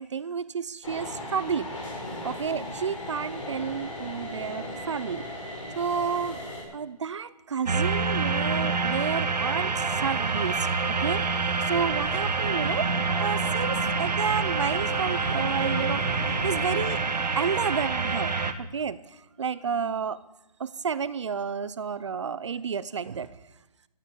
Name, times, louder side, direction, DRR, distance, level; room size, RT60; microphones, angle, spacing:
voice 1, 0.0-1.7 2.2-5.2 5.7-6.4 6.7-11.2 11.6-12.9 13.2-16.0 16.4-17.0 17.4-18.3 18.6-20.2 20.6-23.3, right 6 dB, 45° right, 17 dB, 0.7 m, -31 dB
sound 1, 0.8-6.6, left 1 dB, 50° left, 6.0 m, -37 dB
sound 2, 7.7-18.5, right 4 dB, 85° right, 1.4 m, -27 dB
sound 3, 11.7-16.9, right 1 dB, 5° right, 3.8 m, -37 dB
14.0 x 10.5 x 7.1 m, 0.93 s
hypercardioid pair, 170°, 21 cm